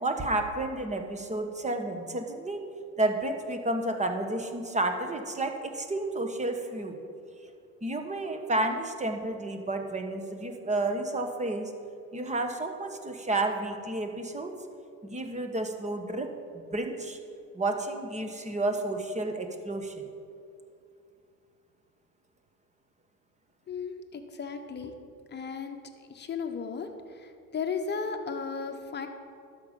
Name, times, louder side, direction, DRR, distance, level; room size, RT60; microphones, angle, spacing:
voice 1, 0.0-2.6 3.0-7.0 7.8-11.7 12.1-14.5 15.0-16.3 16.5-17.2 17.5-20.0, right 2 dB, 15° right, 5 dB, 1.2 m, -31 dB
voice 2, 23.7-24.9 25.3-25.8 26.1-29.1, left 5 dB, 20° left, 5 dB, 1.1 m, -35 dB
12.0 x 5.2 x 7.3 m, 2.6 s
hypercardioid pair, 80°, 47 cm